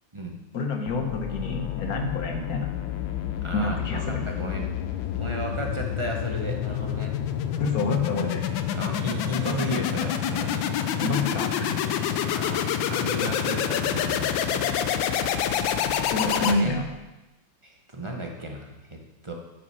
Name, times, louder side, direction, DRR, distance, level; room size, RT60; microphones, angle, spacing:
voice 1, 0.5-2.7 3.5-4.2 7.6-8.4 11.0-11.8 16.1-16.8, left 3 dB, 55° left, 4 dB, 1.3 m, -28 dB
sound 1, 0.9-17.0, left 9 dB, 80° left, 1.4 m, -28 dB
voice 2, 3.4-4.7 5.1-7.1 8.7-10.6 12.2-14.8 16.3-16.8 17.6-19.3, right 1 dB, 25° right, 1 dB, 0.6 m, -34 dB
9.7 x 5.7 x 5.5 m, 1.0 s
omnidirectional pair, 2.1 m